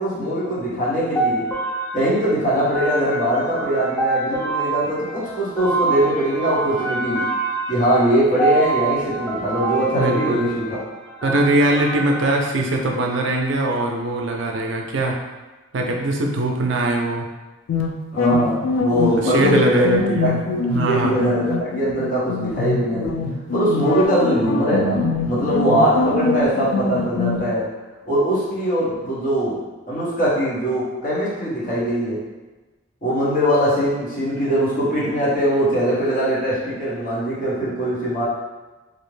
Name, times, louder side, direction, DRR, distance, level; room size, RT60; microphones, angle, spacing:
voice 1, 0.0-1.4 1.9-7.2 7.7-10.8 18.1-20.3 20.9-23.1 23.5-27.7 28.1-29.6 29.9-32.2 33.0-38.3, right 1 dB, 45° left, -8 dB, 0.9 m, -21 dB
sound 1, 1.2-12.4, right 3 dB, 10° left, 0.4 m, -26 dB
voice 2, 9.9-10.5 11.2-15.2 15.7-17.3 19.1-20.4 20.7-21.3, right 2 dB, 70° right, 1 dB, 0.4 m, -21 dB
sound 2, 17.7-27.4, left 3 dB, 85° left, 0.3 m, -23 dB
2.4 x 2.1 x 3.1 m, 1.2 s
head